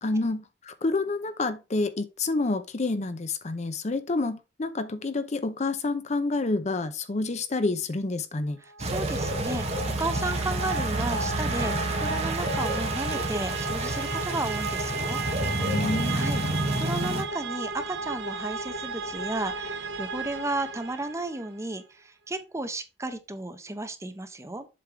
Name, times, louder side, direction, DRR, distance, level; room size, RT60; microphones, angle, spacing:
voice 1, 0.0-8.6 15.6-16.2, left 3 dB, 40° left, 0.6 m, -28 dB
sound 1, 8.7-21.5, right 3 dB, 70° right, 0.9 m, -35 dB
voice 2, 8.8-15.6 16.1-16.4 16.8-24.7, right 2 dB, 15° right, 0.8 m, -34 dB
sound 2, 8.8-17.2, right 2 dB, 35° right, 1.4 m, -29 dB
7.7 x 3.5 x 4.8 m
head